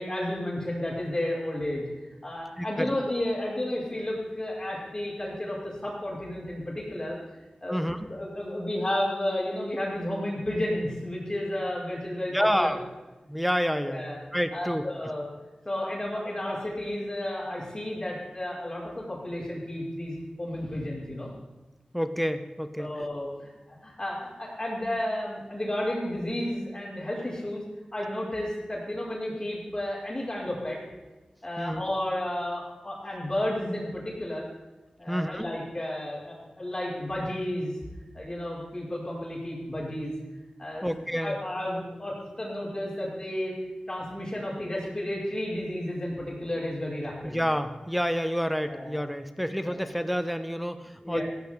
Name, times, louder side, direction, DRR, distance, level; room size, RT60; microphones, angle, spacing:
voice 1, 0.0-7.2 7.6-12.8 13.9-14.2 14.5-15.3 15.6-21.3 22.8-27.6 27.9-30.8 31.4-34.4 35.0-37.8 38.1-40.1 40.6-40.9 41.2-43.5 43.9-47.4 48.7-49.0 49.6-49.9 51.0-51.2, left 1 dB, 30° left, -5 dB, 5.9 m, -32 dB
voice 2, 2.6-3.0 7.7-8.1 12.3-12.8 13.3-14.8 21.9-23.1 31.6-31.8 35.1-35.5 40.8-41.4 47.2-51.2, equal, ahead, 9 dB, 1.1 m, -29 dB
16.0 x 15.5 x 3.9 m, 1.2 s
wide cardioid pair, 65°, 2 cm